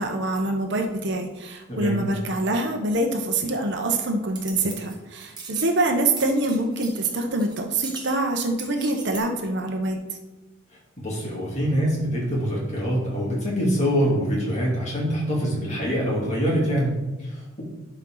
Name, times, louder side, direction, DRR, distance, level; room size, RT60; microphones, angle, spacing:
voice 1, 0.0-10.2, right 2 dB, 60° right, 4 dB, 0.9 m, -25 dB
voice 2, 1.7-2.0 11.0-17.6, equal, 35° left, -5 dB, 2.9 m, -24 dB
sound 1, 4.3-5.0 5.2-5.7 6.2-7.6 7.8-9.2, right 4 dB, 20° right, 1.3 m, -39 dB
11.5 x 4.5 x 3.9 m, 1.2 s
head